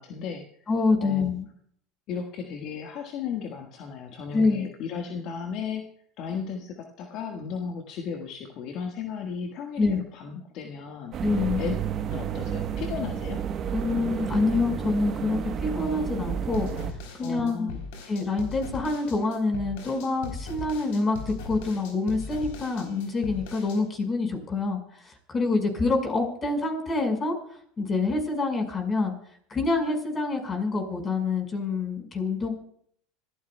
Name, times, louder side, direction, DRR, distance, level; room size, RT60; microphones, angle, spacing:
voice 1, 0.0-0.5 1.0-1.3 2.1-5.9 6.2-11.2 11.6-11.7 12.1-13.4 17.2-17.8, left 6 dB, 55° left, 3 dB, 1.6 m, -35 dB
voice 2, 0.7-1.4 4.3-4.7 9.8-10.0 11.2-11.6 13.7-16.7 17.2-17.7 18.1-24.8 25.0-27.3 27.8-29.1 29.5-32.5, left 3 dB, 25° left, 5 dB, 5.2 m, -26 dB
sound 1, 11.1-16.9, right 8 dB, 40° right, 1.1 m, -31 dB
sound 2, 16.5-23.8, left 4 dB, 70° left, 3.7 m, -39 dB
26.0 x 14.5 x 2.3 m, 0.65 s
hypercardioid pair, 90°, 0 cm